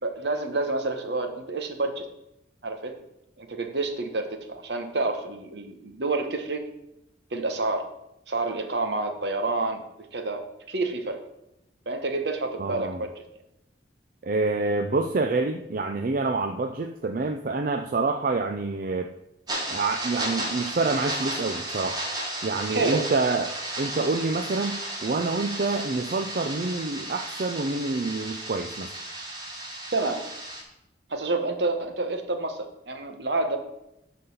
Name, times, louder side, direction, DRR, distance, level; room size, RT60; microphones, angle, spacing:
voice 1, 0.0-2.0 2.6-3.0 3.4-6.7 7.3-7.8 8.3-9.8 10.1-11.2 11.9-13.2 22.7-23.1 29.9-30.2 31.1-33.6, right 3 dB, 70° right, 6 dB, 1.2 m, -28 dB
voice 2, 12.6-13.0 14.2-19.1 19.7-22.0 22.4-28.9, right 3 dB, 50° right, 6 dB, 0.4 m, -27 dB
sound 1, 19.5-30.6, right 1 dB, 25° right, 1.7 m, -34 dB
12.0 x 4.1 x 5.5 m, 0.87 s
head